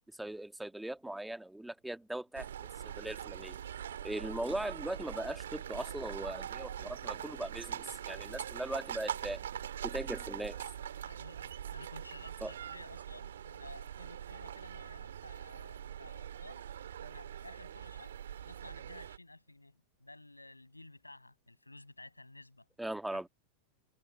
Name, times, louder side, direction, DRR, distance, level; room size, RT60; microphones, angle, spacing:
voice 1, 0.2-3.6 4.0-9.5 9.8-10.6 12.4-12.5 22.8-23.3, right 1 dB, 5° right, 1.9 m, -39 dB
sound 1, 2.3-19.2, right 9 dB, 65° right, 3.5 m, -43 dB
voice 2, 8.0-8.4 11.0-16.7 17.0-22.7 23.1-23.2, left 2 dB, 85° left, 6.7 m, -54 dB
figure-of-eight pair, 90°, 0 cm